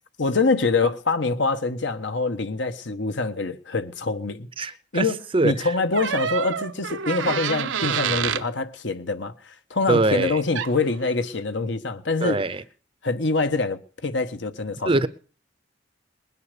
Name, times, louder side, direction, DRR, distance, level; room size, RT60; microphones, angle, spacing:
voice 1, 0.2-12.4 13.0-14.9, left 3 dB, 70° left, 1.2 m, -25 dB
voice 2, 4.6-5.1 5.3-5.7 9.9-10.4 12.2-12.6 14.9-15.1, right 2 dB, 30° right, 0.7 m, -22 dB
sound 1, 5.9-8.5 10.5-10.8, right 7 dB, 80° right, 0.8 m, -27 dB
20.5 x 9.7 x 6.7 m
head